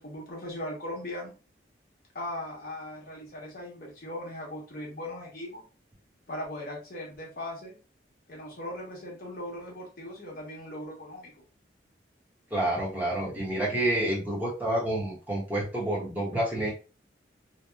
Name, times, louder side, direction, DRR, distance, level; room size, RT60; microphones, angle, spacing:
voice 1, 0.0-1.3 2.1-5.6 6.3-7.8 8.3-11.3, left 1 dB, 50° left, -2 dB, 0.9 m, -39 dB
voice 2, 12.5-16.7, right 1 dB, 10° right, -6 dB, 0.8 m, -28 dB
2.8 x 2.0 x 2.2 m, 0.33 s
head